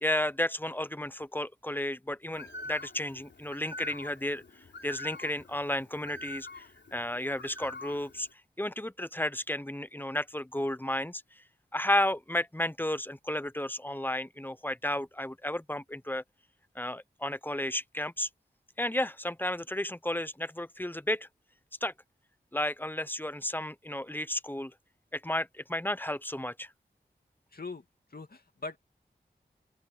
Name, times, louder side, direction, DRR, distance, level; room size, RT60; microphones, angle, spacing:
voice 1, 0.0-4.4 4.8-6.7 6.9-8.3 8.6-11.2 11.7-16.2 16.7-18.3 18.8-21.3 21.8-21.9 22.5-24.7 25.1-26.7, left 1 dB, 10° left, 1.0 m, -32 dB
Bird, 2.3-8.3, left 2 dB, 90° left, 3.6 m, -45 dB
voice 2, 27.5-27.8 28.1-28.8, left 3 dB, 60° left, 2.4 m, -41 dB
open air
cardioid pair, 45°, 18 cm